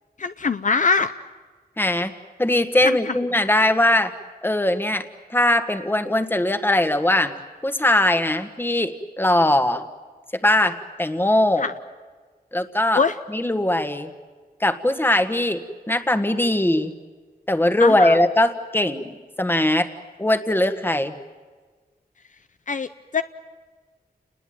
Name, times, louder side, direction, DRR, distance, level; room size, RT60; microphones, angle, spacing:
voice 1, 0.2-1.1 2.8-3.2 11.6-11.7 12.9-13.2 17.8-18.2 22.7-23.2, left 5 dB, 55° left, 10 dB, 0.7 m, -22 dB
voice 2, 1.8-2.1 2.4-4.1 4.4-5.0 5.3-7.3 7.6-9.8 10.4-11.7 12.5-13.0 13.3-14.1 14.6-15.6 15.9-16.9 17.5-19.9 20.2-21.1, left 1 dB, 15° left, 9 dB, 1.6 m, -20 dB
30.0 x 20.5 x 9.2 m, 1.4 s
wide cardioid pair, 135°, 16 cm